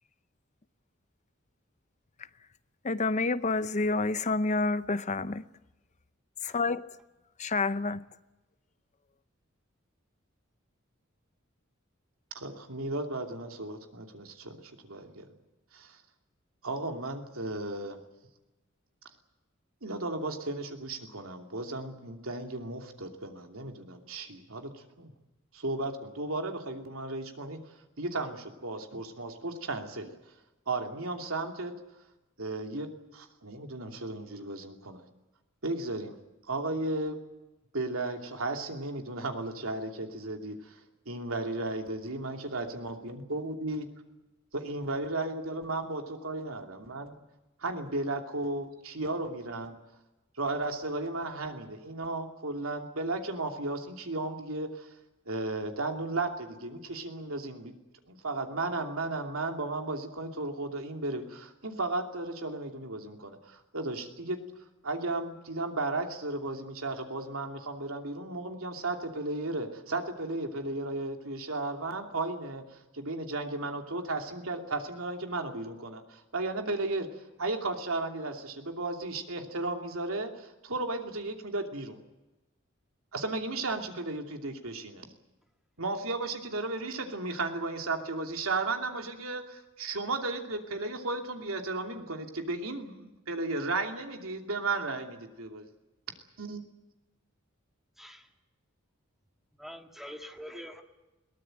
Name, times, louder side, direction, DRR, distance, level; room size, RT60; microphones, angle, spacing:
voice 1, 2.8-5.4 6.4-6.9 7.4-8.1, left 3 dB, 35° left, 0.8 m, -28 dB
voice 2, 12.3-15.3 15.7-16.0 16.6-18.0 19.8-25.1 25.5-27.6 28.0-30.2 30.7-31.7 32.4-35.0 35.6-36.2 36.5-37.2 37.7-40.8 41.1-43.9 44.5-47.2 47.6-49.7 50.4-54.9 55.3-57.7 58.1-64.4 64.8-72.6 72.9-82.0 83.1-85.1 85.8-95.7 96.4-96.6, right 2 dB, 85° right, 2.8 m, -34 dB
voice 3, 98.0-98.3 99.6-100.8, equal, ahead, 2.0 m, -45 dB
22.0 x 18.5 x 9.1 m
head